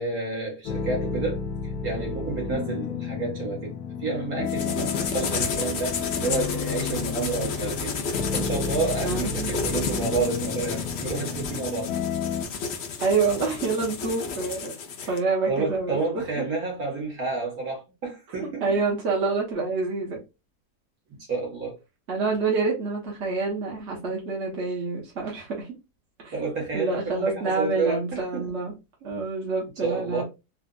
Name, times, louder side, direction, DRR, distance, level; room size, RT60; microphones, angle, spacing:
voice 1, 0.0-1.4 1.8-7.9 8.3-11.9 15.0-15.2 15.5-18.7 21.1-21.8 26.3-28.5 29.8-30.2, right 3 dB, 65° right, 2.0 m, -30 dB
sound 1, 0.6-12.5, left 5 dB, 70° left, 1.0 m, -32 dB
sound 2, 4.5-15.2, left 5 dB, 55° left, 0.8 m, -32 dB
voice 2, 9.0-9.5 13.0-14.7 15.1-16.4 18.4-20.2 22.1-25.7 26.2-26.3 26.7-28.7 29.0-30.2, right 4 dB, 45° right, 1.4 m, -27 dB
4.3 x 2.4 x 2.4 m
omnidirectional pair, 1.7 m